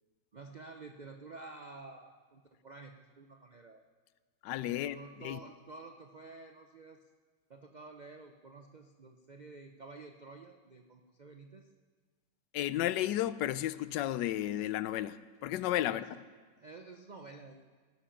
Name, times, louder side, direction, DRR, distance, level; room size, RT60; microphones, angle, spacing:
voice 1, 0.3-3.8 4.7-7.0 7.5-11.7 15.8-16.1 16.6-17.7, right 3 dB, 65° right, 5 dB, 0.4 m, -50 dB
voice 2, 4.4-5.4 12.5-16.1, left 13 dB, 90° left, 16 dB, 1.2 m, -33 dB
17.5 x 10.0 x 5.8 m, 1.5 s
omnidirectional pair, 1.8 m